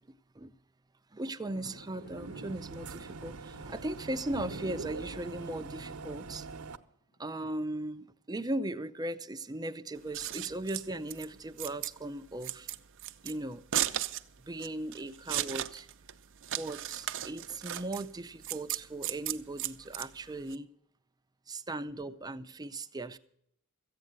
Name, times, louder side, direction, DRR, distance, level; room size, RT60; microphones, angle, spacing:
voice 1, 1.1-6.5 7.2-12.7 13.2-13.6 14.4-15.9 16.5-20.7 21.5-23.2, right 1 dB, 20° right, 0.6 m, -38 dB
Thunder, 1.4-7.2, left 1 dB, 70° left, 1.2 m, -58 dB
sound 1, 1.7-6.8, right 4 dB, 85° right, 0.9 m, -43 dB
Scissors, 10.0-20.6, right 12 dB, 60° right, 0.6 m, -36 dB
14.5 x 8.7 x 7.9 m
head